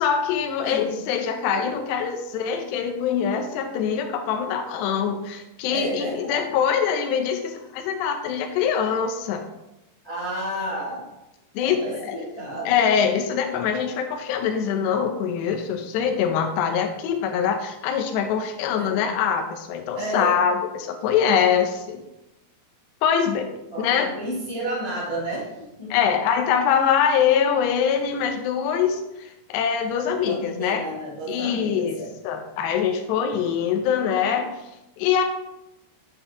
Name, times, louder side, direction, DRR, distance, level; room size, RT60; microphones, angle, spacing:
voice 1, 0.0-9.4 11.5-12.2 12.7-22.0 23.0-23.5 23.8-24.1 25.9-30.9 31.3-32.0 32.2-34.5 35.0-35.2, left 7 dB, 75° left, 5 dB, 2.8 m, -23 dB
voice 2, 0.7-1.0 5.7-6.4 10.0-11.1 11.6-12.8 18.8-19.0 19.9-20.4 23.7-25.9 30.2-32.1 32.5-32.6, right 1 dB, 15° left, -7 dB, 0.9 m, -31 dB
9.3 x 6.4 x 3.8 m, 0.92 s
omnidirectional pair, 5.5 m